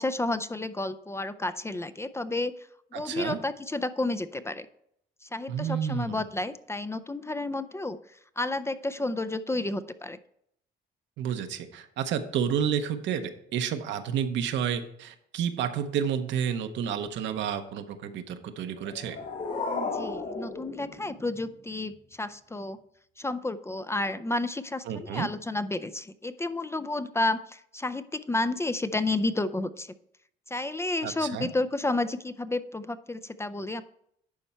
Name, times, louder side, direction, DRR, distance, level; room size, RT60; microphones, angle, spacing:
voice 1, 0.0-2.5 2.9-4.7 5.2-8.0 8.4-10.2 19.8-22.8 23.2-29.9 30.5-33.8, left 2 dB, 15° left, 12 dB, 0.4 m, -31 dB
voice 2, 2.9-3.4 5.5-6.2 11.2-19.2 24.9-25.3 31.0-31.5, right 8 dB, 75° right, 7 dB, 0.9 m, -30 dB
sound 1, 18.7-21.7, left 3 dB, 65° left, 2.6 m, -35 dB
11.0 x 4.4 x 4.3 m, 0.71 s
cardioid pair, 90°, 19 cm